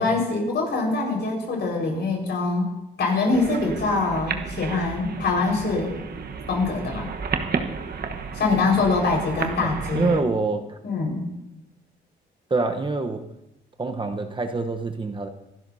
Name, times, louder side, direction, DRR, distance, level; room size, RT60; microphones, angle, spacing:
voice 1, 0.0-2.7 3.0-6.0 6.5-7.1 8.3-10.1 10.8-11.2, left 3 dB, 60° left, 0 dB, 5.0 m, -24 dB
sound 1, 3.3-10.2, right 5 dB, 50° right, 1.3 m, -32 dB
voice 2, 9.6-10.8 12.5-13.2 13.8-15.3, right 3 dB, 25° right, 5 dB, 1.0 m, -26 dB
25.0 x 12.0 x 2.8 m, 0.88 s
cardioid pair, 90°, 20 cm